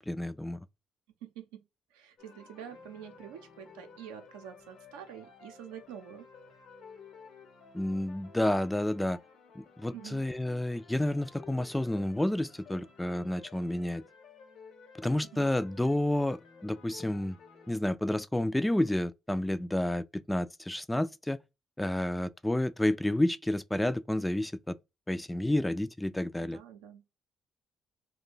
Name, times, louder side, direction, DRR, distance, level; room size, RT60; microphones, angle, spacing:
voice 1, 0.1-0.6 7.7-9.2 9.6-14.0 15.0-17.4 17.7-21.4 21.8-24.8 25.1-26.6, left 1 dB, 10° left, 0.3 m, -30 dB
voice 2, 1.2-1.7 1.9-6.3 9.9-10.3 15.3-15.5 26.4-27.0, right 9 dB, 85° right, 0.6 m, -47 dB
sound 1, 2.2-17.7, left 5 dB, 70° left, 1.0 m, -54 dB
2.5 x 2.3 x 3.8 m
hypercardioid pair, 50°, 0 cm